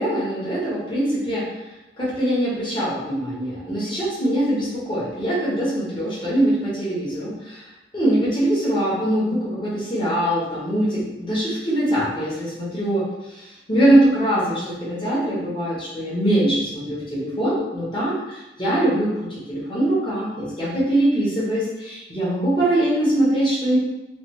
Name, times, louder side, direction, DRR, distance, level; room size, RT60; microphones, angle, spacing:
voice 1, 0.0-1.4 2.0-7.6 7.9-13.1 13.4-23.8, right 1 dB, 25° left, -8 dB, 1.1 m, -22 dB
3.3 x 2.5 x 3.0 m, 1.0 s
head